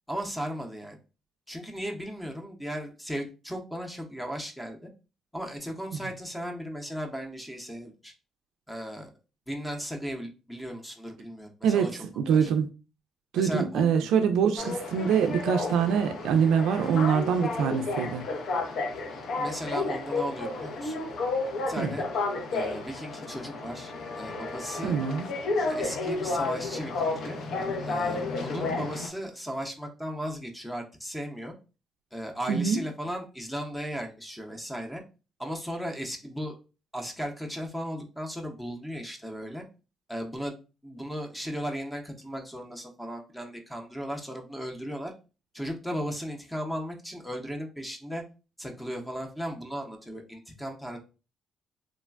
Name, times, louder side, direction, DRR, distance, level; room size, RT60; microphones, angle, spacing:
voice 1, 0.1-1.0 1.5-4.9 5.3-8.1 8.7-9.1 9.5-12.0 12.3-12.5 13.3-13.8 19.4-21.0 21.7-22.1 22.5-24.9 25.7-27.4 27.9-31.5 32.1-35.0 35.4-36.5 36.9-39.6 40.1-40.6 40.8-45.1 45.5-48.2 48.6-51.0, equal, 5° left, 0.6 m, -36 dB
voice 2, 11.6-12.7 13.3-18.2 21.8-21.9 24.8-25.3 32.5-32.8, right 7 dB, 90° right, 0.3 m, -24 dB
sound 1, 14.6-29.1, left 3 dB, 70° left, 0.5 m, -32 dB
3.1 x 2.1 x 2.3 m
cardioid pair, 90°, 0 cm